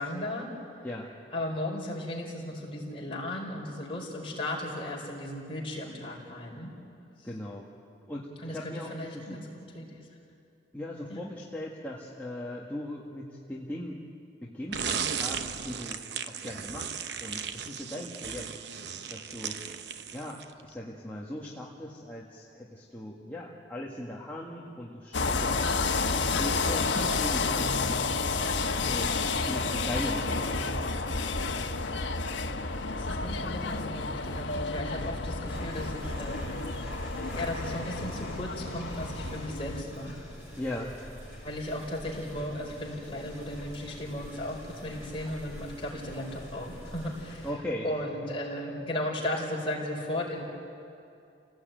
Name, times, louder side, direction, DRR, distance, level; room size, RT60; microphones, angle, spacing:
voice 1, 0.0-0.8 1.3-6.7 7.2-7.3 8.4-9.5 9.7-10.1 11.1-11.3 32.9-36.5 37.3-40.3 41.4-47.5 47.8-50.4, left 1 dB, 30° left, -2 dB, 4.7 m, -36 dB
voice 2, 7.2-7.7 8.1-9.4 10.7-14.0 14.4-18.5 19.1-19.6 20.1-25.6 26.3-28.1 28.8-30.8 40.5-40.9 47.4-47.9, left 1 dB, 10° left, -5 dB, 1.7 m, -39 dB
sound 1, 14.7-20.6, right 7 dB, 65° right, 0.9 m, -36 dB
sound 2, 25.1-39.8, left 3 dB, 80° left, 1.3 m, -30 dB
sound 3, 35.4-47.5, equal, 10° right, 7.5 m, -45 dB
28.5 x 17.5 x 9.2 m, 2.6 s
head